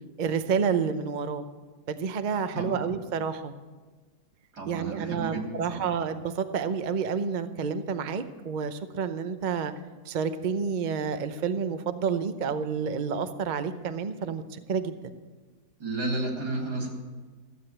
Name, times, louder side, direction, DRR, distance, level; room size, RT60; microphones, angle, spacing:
voice 1, 0.2-1.5 1.9-3.5 4.7-9.7 10.1-15.1, right 6 dB, 45° right, 9 dB, 0.6 m, -29 dB
voice 2, 4.5-5.4 5.7-6.0 15.8-16.9, right 2 dB, 90° right, -1 dB, 3.7 m, -32 dB
15.0 x 7.8 x 8.7 m, 1.3 s
omnidirectional pair, 1.7 m